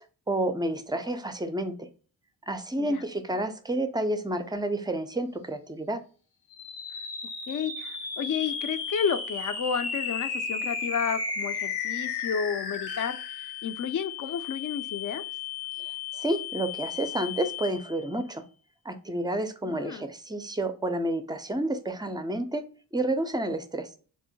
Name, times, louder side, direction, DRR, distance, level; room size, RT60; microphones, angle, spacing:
voice 1, 0.3-1.9 2.5-6.0 16.2-18.4 18.9-22.6 22.9-23.9, right 1 dB, 10° right, 9 dB, 0.4 m, -30 dB
sound 1, 6.5-18.1, left 5 dB, 80° left, 0.9 m, -34 dB
voice 2, 7.5-13.2 13.4-15.2 19.6-20.1, left 7 dB, 50° left, 11 dB, 0.4 m, -31 dB
3.7 x 2.1 x 2.6 m, 0.38 s
cardioid pair, 65°, 42 cm